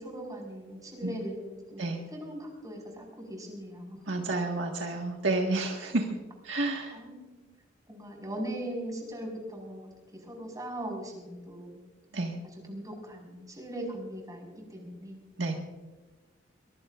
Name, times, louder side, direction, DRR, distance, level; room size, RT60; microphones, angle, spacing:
voice 1, 0.0-4.1 6.9-7.5 7.9-11.8 12.4-15.2, right 1 dB, 20° right, 0 dB, 5.0 m, -40 dB
voice 2, 4.1-6.1 6.4-6.9 12.1-12.3 15.4-15.5, right 2 dB, 70° right, 1 dB, 1.8 m, -30 dB
22.5 x 22.0 x 2.5 m, 1.2 s
head